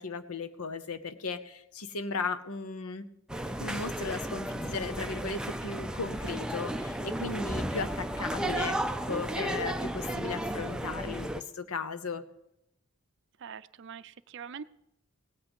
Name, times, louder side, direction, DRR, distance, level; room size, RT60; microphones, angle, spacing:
voice 1, 0.0-3.1 3.6-8.8 9.0-12.2, left 4 dB, 85° left, 12 dB, 0.8 m, -36 dB
sound 1, 3.3-11.4, right 1 dB, 5° right, 0.5 m, -34 dB
voice 2, 13.4-14.7, right 7 dB, 55° right, 14 dB, 0.5 m, -43 dB
17.0 x 8.8 x 5.3 m, 0.81 s
head